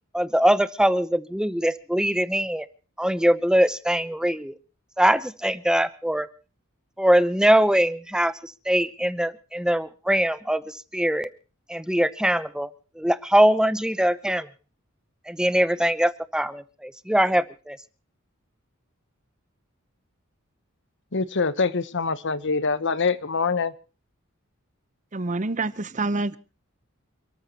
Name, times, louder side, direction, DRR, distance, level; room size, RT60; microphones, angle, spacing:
voice 1, 0.1-2.7 3.0-4.6 5.0-6.3 7.0-11.3 11.7-12.7 13.0-14.5 15.3-17.8, equal, 5° right, 14 dB, 0.7 m, -22 dB
voice 2, 21.1-23.7, left 4 dB, 60° left, 15 dB, 1.0 m, -24 dB
voice 3, 25.1-26.4, right 3 dB, 35° right, 16 dB, 0.8 m, -27 dB
29.0 x 13.5 x 3.0 m, 0.35 s
head